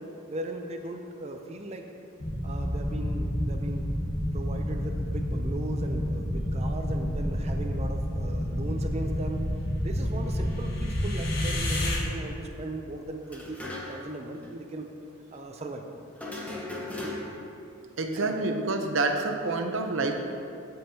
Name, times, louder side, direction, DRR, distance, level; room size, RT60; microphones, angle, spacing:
voice 1, 0.0-1.8 2.4-3.8 4.3-9.5 9.8-14.9 15.3-15.8 16.3-16.4 18.1-18.5, right 2 dB, 30° right, 4 dB, 0.5 m, -38 dB
sound 1, 2.2-12.0, equal, 60° left, 1.5 m, -29 dB
sound 2, 13.2-14.2 14.4-14.5 16.2-17.5, left 1 dB, 5° left, 0.9 m, -37 dB
voice 2, 18.0-20.1, right 3 dB, 65° right, 4 dB, 0.7 m, -27 dB
15.5 x 5.5 x 2.8 m, 2.6 s
head